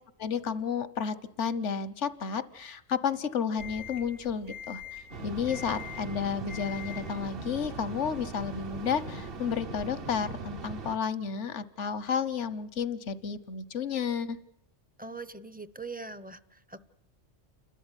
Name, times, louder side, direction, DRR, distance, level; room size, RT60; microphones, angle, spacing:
voice 1, 0.2-14.4, left 6 dB, 80° left, 16 dB, 1.4 m, -32 dB
sound 1, 3.6-9.6, left 7 dB, 85° right, 3.1 m, -46 dB
sound 2, 5.1-11.0, right 3 dB, 55° right, 1.3 m, -40 dB
voice 2, 15.0-16.8, right 3 dB, 10° right, 15 dB, 0.7 m, -42 dB
29.5 x 13.0 x 9.8 m, 0.81 s
omnidirectional pair, 1.2 m